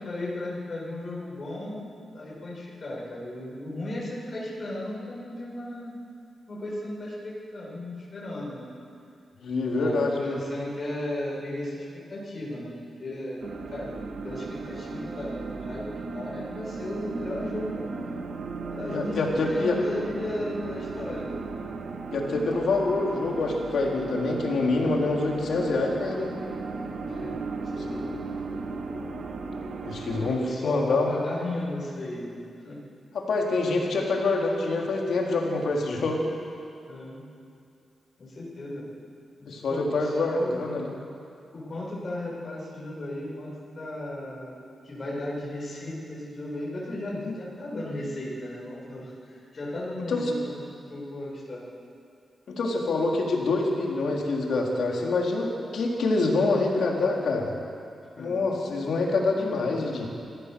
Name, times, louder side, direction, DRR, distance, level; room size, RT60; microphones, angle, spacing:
voice 1, 0.0-1.9 2.1-5.9 6.5-8.7 9.7-11.8 12.1-12.7 13.0-13.4 13.7-14.0 14.2-15.8 16.1-18.1 18.7-21.3 27.1-28.1 30.1-32.8 36.9-37.3 38.2-38.8 39.4-40.6 41.5-44.5 44.8-50.6 50.9-51.6 58.2-58.4, left 1 dB, 40° left, -5 dB, 7.2 m, -35 dB
voice 2, 9.4-10.4 18.9-19.8 22.1-26.3 29.8-31.1 33.1-36.3 39.5-40.9 47.2-47.3 50.1-50.2 52.5-57.5 58.2-60.1, left 3 dB, 75° left, -1 dB, 3.5 m, -26 dB
sound 1, 13.4-30.4, right 4 dB, 70° right, 2.0 m, -36 dB
25.0 x 16.0 x 6.9 m, 2.5 s
cardioid pair, 100°, 0 cm